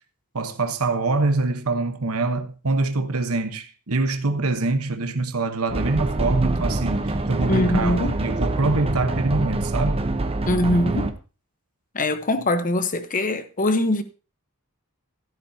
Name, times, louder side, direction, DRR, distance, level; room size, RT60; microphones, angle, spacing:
voice 1, 0.3-10.1, right 3 dB, 70° right, 1.1 m, -24 dB
sound 1, 5.7-11.1, right 2 dB, 25° right, 0.9 m, -25 dB
voice 2, 7.5-8.2 10.5-11.1 11.9-14.0, left 1 dB, 35° left, 1.0 m, -22 dB
13.5 x 12.0 x 2.8 m
head